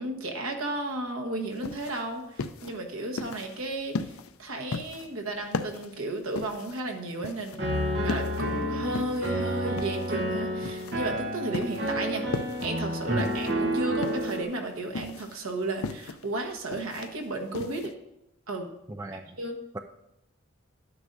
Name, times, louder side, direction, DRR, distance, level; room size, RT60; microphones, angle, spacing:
voice 1, 0.0-4.1 4.4-7.6 8.0-17.9 18.5-18.7 19.4-19.6, right 2 dB, 85° right, 2 dB, 1.3 m, -33 dB
sound 1, 1.5-17.9, left 4 dB, 90° left, 0.5 m, -37 dB
Piano, 7.6-14.4, equal, 55° right, 1.1 m, -30 dB
voice 2, 13.1-13.4 18.9-19.4, right 1 dB, 15° right, 7 dB, 0.3 m, -34 dB
11.5 x 9.4 x 2.6 m, 0.87 s
head